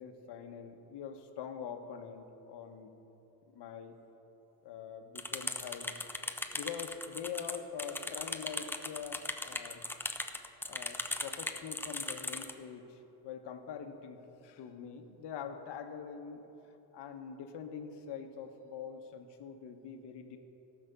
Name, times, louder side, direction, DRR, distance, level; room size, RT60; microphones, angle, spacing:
voice 1, 0.0-2.9 3.5-3.9 4.6-6.0 6.5-9.9 10.7-16.4 16.9-20.4, left 7 dB, 70° left, 6 dB, 1.2 m, -44 dB
sound 1, 5.2-12.5, left 2 dB, 5° left, 0.3 m, -38 dB
17.5 x 5.9 x 6.8 m, 3.0 s
cardioid pair, 150°, 43 cm